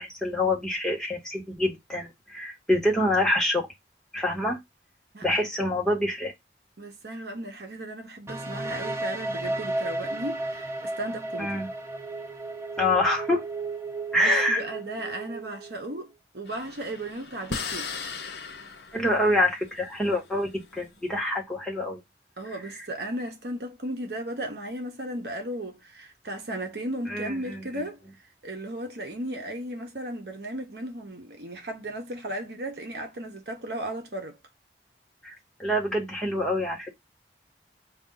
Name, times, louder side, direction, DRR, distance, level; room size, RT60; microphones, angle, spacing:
voice 1, 0.0-3.7 4.1-4.6 5.2-6.3 11.4-11.7 12.8-13.4 14.1-14.6 18.9-22.0 27.1-27.6 35.2-35.3 35.6-36.9, left 1 dB, 5° left, 1.3 m, -26 dB
voice 2, 5.1-5.5 6.8-11.6 14.1-17.9 22.4-28.0 28.4-34.4, right 1 dB, 65° right, 1.0 m, -35 dB
sound 1, 8.3-16.0, right 2 dB, 15° right, 0.5 m, -34 dB
sound 2, 16.5-21.1, left 5 dB, 70° left, 0.7 m, -38 dB
5.2 x 2.4 x 3.8 m
head